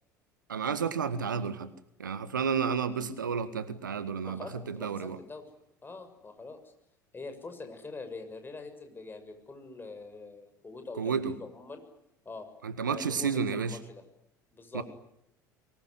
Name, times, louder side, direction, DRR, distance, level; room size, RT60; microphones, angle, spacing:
voice 1, 0.5-1.7 2.0-5.2 10.9-11.3 12.6-13.8 14.7-14.8, right 6 dB, 80° right, 1.6 m, -31 dB
voice 2, 4.2-5.4 5.8-6.6 7.1-11.8 12.2-12.5 12.8-14.0 14.5-14.8, left 3 dB, 20° left, 6.8 m, -44 dB
24.0 x 22.0 x 9.8 m
figure-of-eight pair, 65°, 10 cm